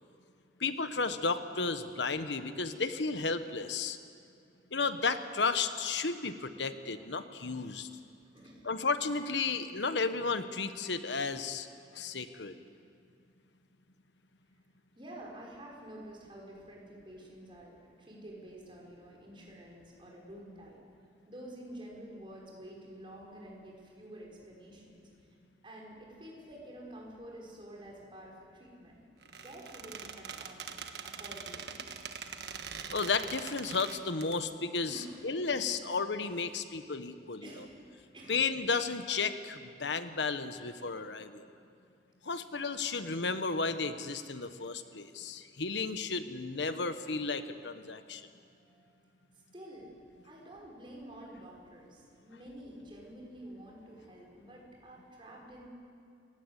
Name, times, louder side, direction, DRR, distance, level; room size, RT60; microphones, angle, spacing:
voice 1, 0.6-4.0 4.7-7.9 8.6-11.7 11.9-12.5 32.9-37.6 38.3-41.4 42.2-48.2, left 4 dB, 90° left, 10 dB, 1.3 m, -33 dB
voice 2, 8.3-8.7 14.9-20.8 21.3-25.1 25.6-29.0 29.4-30.8 31.0-31.9 34.9-35.2 35.5-35.6 37.4-37.8 38.1-38.4 48.6-49.0 49.5-50.0 50.2-55.7, right 1 dB, 30° right, -2 dB, 5.5 m, -49 dB
Squeak, 29.2-34.3, right 6 dB, 70° right, 1.4 m, -43 dB
27.0 x 17.5 x 8.2 m, 2.4 s
head